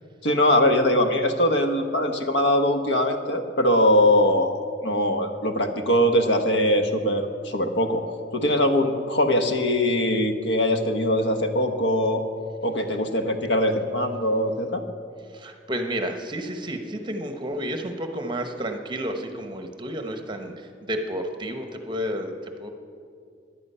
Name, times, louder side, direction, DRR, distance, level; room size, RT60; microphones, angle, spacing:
voice 1, 0.2-4.6 4.8-8.0 8.3-12.2 12.6-14.8, left 1 dB, 85° left, 6 dB, 1.1 m, -22 dB
voice 2, 15.3-22.7, equal, 25° right, 6 dB, 1.0 m, -31 dB
15.0 x 10.5 x 5.6 m, 2.3 s
head